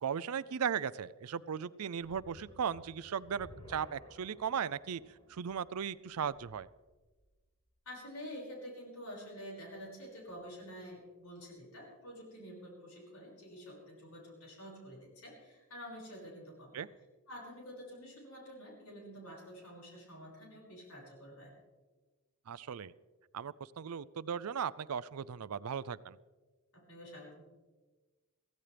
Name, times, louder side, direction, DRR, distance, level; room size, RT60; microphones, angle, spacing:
voice 1, 0.0-5.0 5.3-6.7 16.7-16.9 22.5-22.9 23.3-26.2, right 7 dB, 90° right, 18 dB, 0.5 m, -37 dB
sound 1, 2.0-7.2, left 1 dB, 25° left, 3.9 m, -57 dB
voice 2, 7.9-16.9 17.3-21.5 26.7-27.4, equal, 85° left, -2 dB, 5.8 m, -48 dB
23.0 x 15.5 x 3.4 m, 1.3 s
head